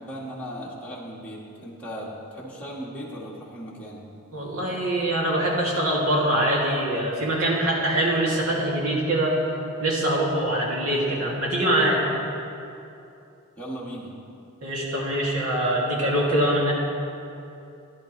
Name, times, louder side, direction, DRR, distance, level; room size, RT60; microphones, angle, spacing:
voice 1, 0.0-4.0 13.6-14.1, equal, 5° left, -7 dB, 1.8 m, -37 dB
voice 2, 4.3-9.4 9.8-12.0 14.6-16.7, right 1 dB, 80° right, -4 dB, 2.6 m, -23 dB
16.5 x 10.5 x 3.3 m, 2.7 s
head